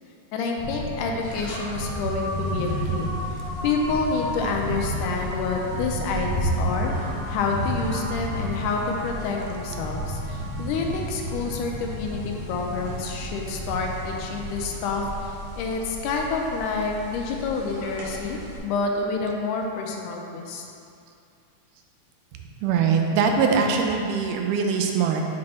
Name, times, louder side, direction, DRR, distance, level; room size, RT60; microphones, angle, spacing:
voice 1, 0.3-3.1 3.6-6.9 7.3-20.6, left 4 dB, 80° left, 1 dB, 2.0 m, -28 dB
sound 1, 0.6-15.1, right 1 dB, 55° left, 1.7 m, -32 dB
sound 2, 1.2-18.6, equal, 60° right, 1.1 m, -38 dB
voice 2, 22.6-25.2, right 5 dB, 80° right, 2 dB, 1.9 m, -22 dB
6.7 x 4.3 x 4.2 m, 2.5 s
omnidirectional pair, 3.9 m